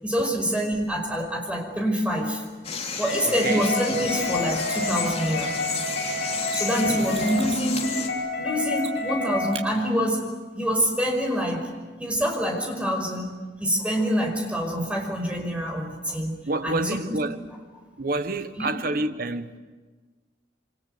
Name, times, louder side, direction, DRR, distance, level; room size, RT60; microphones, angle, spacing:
voice 1, 0.0-2.4 3.0-5.5 6.5-8.1 8.4-13.3 13.6-17.2 18.6-18.8, equal, 5° right, 5.4 m, -26 dB
sound 1, 2.6-8.1, left 4 dB, 35° left, 3.5 m, -32 dB
sound 2, 3.0-9.6, left 2 dB, 70° left, 7.1 m, -29 dB
voice 2, 3.2-3.6 6.3-6.4 16.5-17.4 18.0-19.6, right 2 dB, 55° right, 1.2 m, -28 dB
Mechanisms, 6.5-7.7 8.8-9.2 9.5-9.7 12.4-12.5, right 6 dB, 35° right, 4.5 m, -39 dB
28.0 x 26.5 x 8.0 m
head